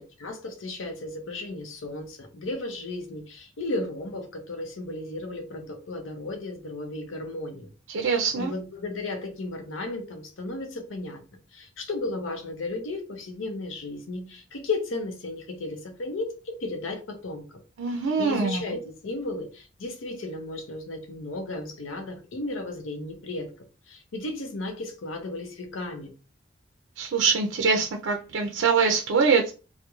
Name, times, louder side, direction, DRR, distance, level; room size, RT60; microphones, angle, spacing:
voice 1, 0.0-7.7 8.0-11.2 11.5-17.6 17.9-23.5 23.9-26.1, left 2 dB, 85° left, 0.6 m, -34 dB
voice 2, 7.9-8.5 17.8-18.6 27.0-29.5, right 5 dB, 80° right, 0.4 m, -23 dB
2.3 x 2.1 x 2.9 m
head